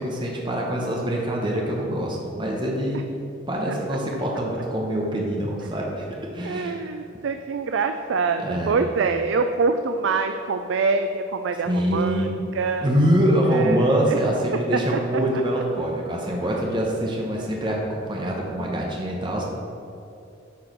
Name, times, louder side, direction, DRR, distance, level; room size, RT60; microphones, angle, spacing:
voice 1, 0.0-3.1 3.5-6.1 6.3-7.0 8.4-8.8 11.7-12.5 12.8-19.4, equal, 25° right, -2 dB, 1.0 m, -24 dB
voice 2, 6.4-12.3 12.5-12.9 13.5-14.2 14.7-14.8, right 4 dB, 85° right, 7 dB, 0.4 m, -25 dB
9.4 x 4.8 x 6.0 m, 2.6 s
head